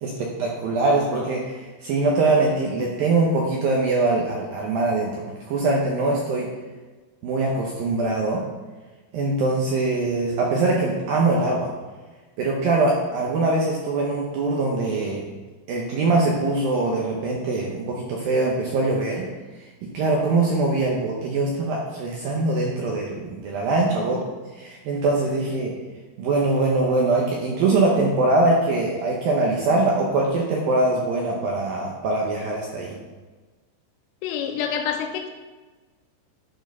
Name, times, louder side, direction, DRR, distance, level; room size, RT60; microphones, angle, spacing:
voice 1, 0.0-6.5 7.2-8.4 9.1-11.7 12.4-15.2 15.7-19.3 19.6-19.7 19.9-24.2 24.6-25.7 26.2-33.0, right 2 dB, 75° right, -2 dB, 2.1 m, -22 dB
voice 2, 34.2-35.3, left 8 dB, 80° left, 4 dB, 3.0 m, -27 dB
11.0 x 4.5 x 5.3 m, 1.3 s
omnidirectional pair, 5.3 m